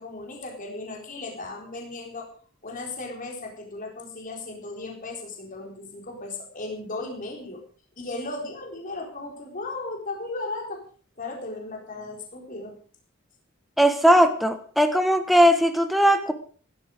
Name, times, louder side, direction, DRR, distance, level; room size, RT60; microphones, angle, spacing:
voice 1, 0.0-2.3 2.6-7.6 8.0-10.8 11.2-12.8, left 2 dB, 40° left, 0 dB, 4.3 m, -36 dB
voice 2, 13.8-16.3, equal, ahead, 7 dB, 1.3 m, -19 dB
16.5 x 13.0 x 5.1 m, 0.43 s
head